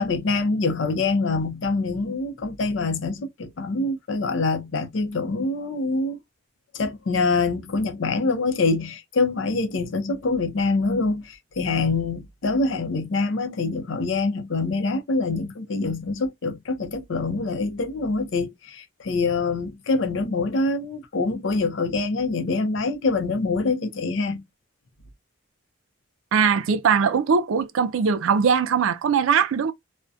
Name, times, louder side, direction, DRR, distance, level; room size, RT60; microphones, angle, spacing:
voice 1, 0.0-6.2 6.7-24.4, left 3 dB, 70° left, 0.5 m, -25 dB
voice 2, 26.3-29.7, right 6 dB, 85° right, 0.4 m, -20 dB
2.6 x 2.1 x 2.3 m
head